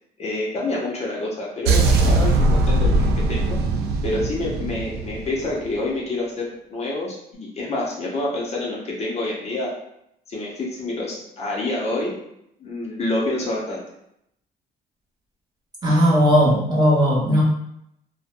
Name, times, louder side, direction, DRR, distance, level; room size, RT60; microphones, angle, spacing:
voice 1, 0.2-3.6 4.0-9.7 10.3-12.2 12.6-13.8, left 2 dB, 40° left, -3 dB, 0.6 m, -27 dB
sound 1, 1.7-5.7, right 2 dB, 75° right, 0.4 m, -20 dB
voice 2, 15.8-17.4, equal, 25° right, -6 dB, 1.0 m, -17 dB
2.6 x 2.1 x 2.5 m, 0.77 s
cardioid pair, 110°, 17 cm